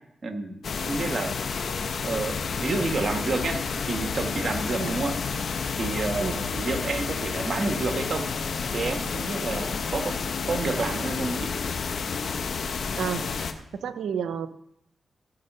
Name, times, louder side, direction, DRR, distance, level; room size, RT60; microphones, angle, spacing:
voice 1, 0.2-0.6 0.9-1.3 2.0-5.2 5.8-8.3 8.7-10.1 10.5-11.5, right 3 dB, 60° right, 5 dB, 1.8 m, -29 dB
sound 1, 0.6-13.5, left 5 dB, 70° left, 1.0 m, -30 dB
voice 2, 13.0-14.5, right 7 dB, 85° right, 11 dB, 0.7 m, -31 dB
16.5 x 5.9 x 5.6 m, 0.79 s
supercardioid pair, 50°, 0 cm